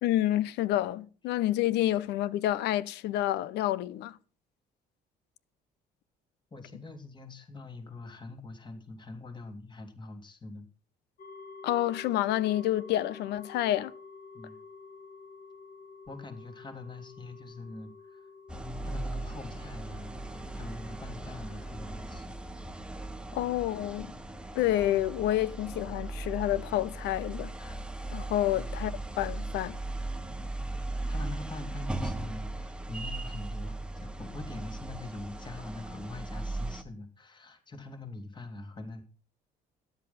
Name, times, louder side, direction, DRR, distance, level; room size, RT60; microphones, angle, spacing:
voice 1, 0.0-4.2 11.6-13.9 23.3-24.1 24.5-27.7 28.1-29.8, left 13 dB, 80° left, 0.8 m, -29 dB
voice 2, 6.5-10.7 14.3-14.6 16.1-18.3 18.8-22.4 28.5-28.7 30.4-39.0, left 2 dB, 25° left, 3.1 m, -44 dB
sound 1, 11.2-22.0, left 4 dB, 55° left, 2.2 m, -50 dB
sound 2, 18.5-36.8, right 2 dB, 5° right, 1.2 m, -38 dB
13.0 x 10.5 x 5.8 m
cardioid pair, 110°, 17 cm